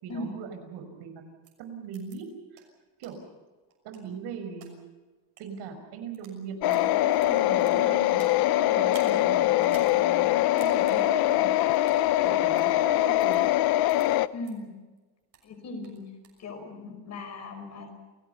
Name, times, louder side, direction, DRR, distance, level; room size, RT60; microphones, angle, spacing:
voice 1, 0.0-1.2 1.6-2.6 3.0-3.2 3.8-4.8 5.4-11.5 12.2-13.5, right 6 dB, 90° right, 6 dB, 5.9 m, -40 dB
sound 1, 1.4-1.5 1.9-2.2 2.5-2.6 3.0-3.1 3.7-4.7 5.2-5.4 6.0-6.4 6.6-8.4 8.8-9.1 9.6-9.9 10.2-10.3 10.6-10.9 11.7-12.0 12.5-12.6 13.2-13.4 13.9-14.0 14.4-14.5 15.0-15.5 15.8-16.4, right 8 dB, 55° right, 6.5 m, -51 dB
sound 2, 6.6-14.3, left 15 dB, 70° left, 0.9 m, -23 dB
voice 2, 14.3-14.7 15.4-16.1 16.4-17.9, left 2 dB, 40° left, 5 dB, 5.8 m, -38 dB
29.0 x 18.5 x 6.9 m, 1.2 s
cardioid pair, 170°, 39 cm